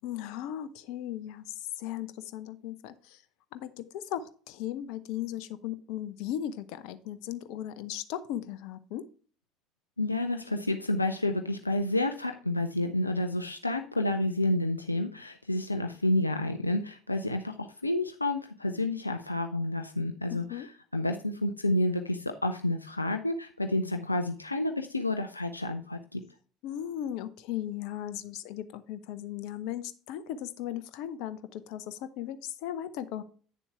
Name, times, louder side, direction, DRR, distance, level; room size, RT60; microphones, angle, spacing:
voice 1, 0.0-3.2 3.5-9.1 20.3-20.7 26.6-33.2, left 11 dB, 60° left, 13 dB, 0.8 m, -37 dB
voice 2, 10.0-20.7 20.9-26.2, left 1 dB, 90° left, 5 dB, 0.5 m, -30 dB
9.6 x 7.0 x 3.4 m, 0.42 s
figure-of-eight pair, 65°, 0 cm